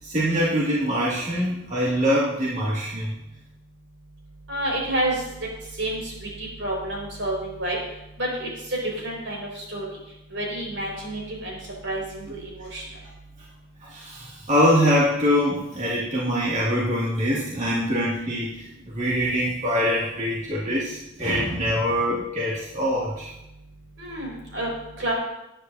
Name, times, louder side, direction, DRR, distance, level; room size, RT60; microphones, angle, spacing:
voice 1, 0.0-3.1 13.8-23.3, equal, 40° right, -7 dB, 2.4 m, -24 dB
voice 2, 4.5-5.2 5.8-6.0 6.4-7.8 8.2-9.4 9.7-9.8 10.3-11.6 11.8-12.8 24.0-24.7 25.0-25.1, right 1 dB, 75° right, -2 dB, 5.4 m, -29 dB
19.5 x 10.0 x 2.8 m, 0.89 s
head